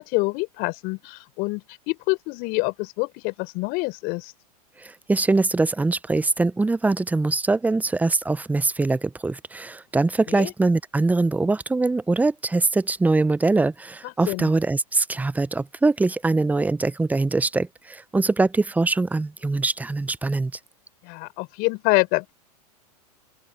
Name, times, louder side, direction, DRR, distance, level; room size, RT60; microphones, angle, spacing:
voice 1, 0.0-4.3 10.3-10.5 14.0-14.5 21.0-22.3, left 27 dB, 50° left, 5.8 m, -26 dB
voice 2, 4.8-20.5, right 3 dB, 10° right, 0.8 m, -23 dB
open air
hypercardioid pair, 100°, 20 cm